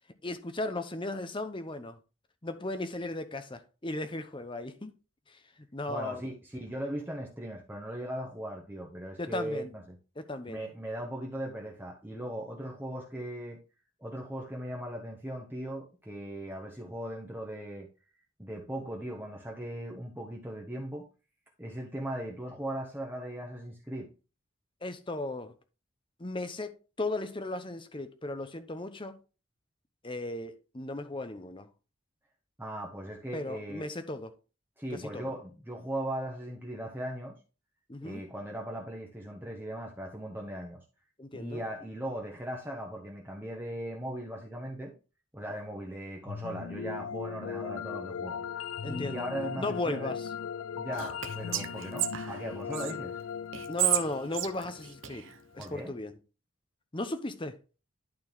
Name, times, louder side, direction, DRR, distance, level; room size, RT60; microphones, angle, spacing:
voice 1, 0.2-2.0 2.4-4.9 5.3-5.4 5.7-6.2 9.2-9.7 10.2-10.6 24.8-25.5 26.2-29.2 30.0-31.7 33.3-34.3 35.0-35.3 37.9-38.2 41.2-41.6 48.8-50.3 53.7-55.3 55.5-56.2 56.9-57.6, left 2 dB, 25° left, 0.8 m, -36 dB
voice 2, 5.9-10.0 10.5-13.6 14.0-17.9 18.4-21.1 21.6-24.1 32.6-33.8 34.8-37.4 38.0-40.8 41.3-44.9 45.3-48.4 48.9-50.1 50.8-53.2 55.6-55.9, right 1 dB, 10° right, 1.1 m, -38 dB
sound 1, 46.3-55.4, left 7 dB, 75° left, 0.4 m, -39 dB
Whispering, 50.9-52.9 53.5-55.7, right 12 dB, 60° right, 0.9 m, -32 dB
11.5 x 4.3 x 3.6 m
head